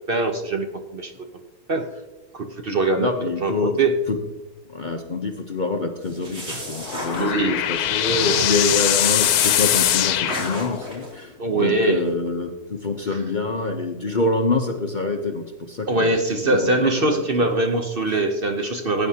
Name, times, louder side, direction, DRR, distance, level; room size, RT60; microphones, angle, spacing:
voice 1, 0.1-0.7 0.9-1.2 1.7-1.9 2.3-3.1 3.4-3.9 7.2-7.7 11.4-12.1 13.1-13.2 15.9-19.1, right 2 dB, 45° right, 5 dB, 0.8 m, -22 dB
voice 2, 3.0-3.8 4.1-4.2 4.7-16.2 16.4-17.1 17.4-17.5, left 3 dB, 40° left, 4 dB, 0.7 m, -26 dB
sound 1, 6.0-7.7 8.1-8.9 9.4-10.0 10.3-11.1, right 1 dB, 65° right, 3.3 m, -34 dB
sound 2, 6.6-11.1, left 11 dB, 90° left, 1.1 m, -22 dB
17.5 x 9.3 x 2.8 m, 1.1 s
omnidirectional pair, 1.6 m